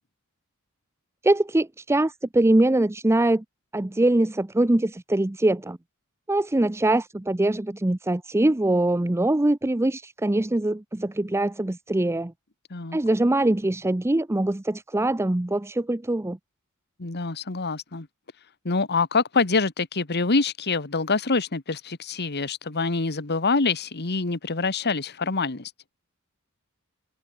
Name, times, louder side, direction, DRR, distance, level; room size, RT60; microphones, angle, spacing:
voice 1, 1.2-3.4 3.7-5.8 6.3-12.3 12.9-16.4, right 1 dB, 10° right, 0.5 m, -23 dB
voice 2, 17.0-18.1 18.6-25.7, left 4 dB, 50° left, 1.5 m, -25 dB
head